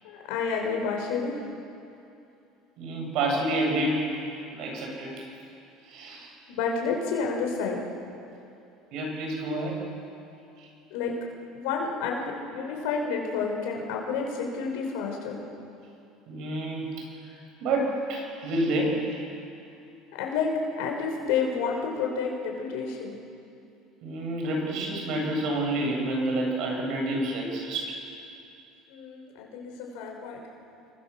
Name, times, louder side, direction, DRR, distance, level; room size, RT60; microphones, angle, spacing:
voice 1, 0.0-1.3 6.5-7.8 10.9-11.2 11.5-15.4 20.2-20.5 20.8-23.1 28.9-30.4, left 5 dB, 80° left, 1 dB, 5.7 m, -30 dB
voice 2, 2.8-4.1 4.5-5.3 5.8-6.3 8.9-9.8 10.6-10.7 16.3-16.9 17.3-19.0 24.0-28.0, right 1 dB, 65° right, 1 dB, 8.0 m, -29 dB
29.5 x 22.5 x 7.3 m, 2.7 s
cardioid pair, 125°, 0 cm